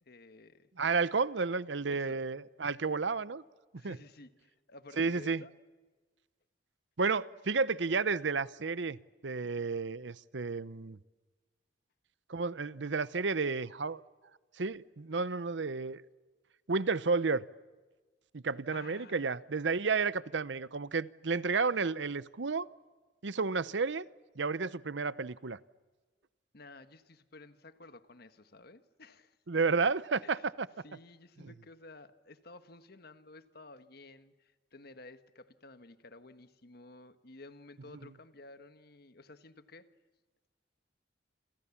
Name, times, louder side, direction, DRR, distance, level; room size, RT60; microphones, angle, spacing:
voice 1, 0.0-0.7 1.9-2.2 3.8-5.5 18.7-19.4 26.5-29.4 30.2-30.5 30.8-39.9, left 2 dB, 55° left, 1.5 m, -53 dB
voice 2, 0.8-3.4 3.7-4.0 5.0-5.4 7.0-9.0 9.2-11.0 12.3-14.0 14.6-16.0 16.7-17.4 18.3-22.7 23.2-24.1 24.4-25.6 29.5-30.7 31.4-31.5, right 4 dB, 75° right, 0.8 m, -31 dB
28.0 x 28.0 x 7.2 m
head